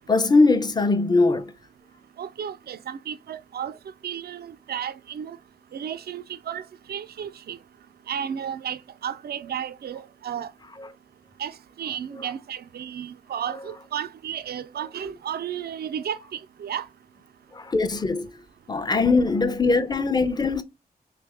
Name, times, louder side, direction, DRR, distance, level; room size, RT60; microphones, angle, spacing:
voice 1, 0.1-1.5 17.5-18.3 18.7-20.6, left 3 dB, 25° left, 0.5 m, -21 dB
voice 2, 2.2-3.7 4.0-5.4 5.7-7.6 8.1-10.5 11.4-16.9 19.2-19.3, right 9 dB, 75° right, 0.4 m, -33 dB
3.3 x 2.7 x 3.4 m
cardioid pair, 65°, 16 cm